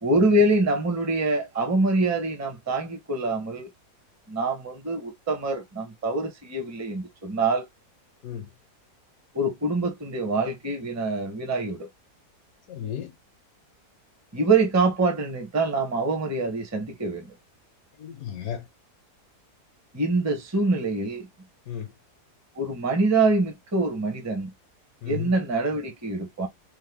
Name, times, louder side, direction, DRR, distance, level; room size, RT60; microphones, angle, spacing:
voice 1, 0.0-3.7 4.3-7.6 9.3-11.9 14.3-17.3 19.9-21.3 22.6-24.5 25.0-26.5, right 2 dB, 15° right, 0.5 m, -25 dB
voice 2, 12.7-13.1 18.0-18.7 21.7-21.9 25.0-25.3, left 9 dB, 70° left, 1.0 m, -34 dB
3.3 x 2.1 x 3.5 m
omnidirectional pair, 1.7 m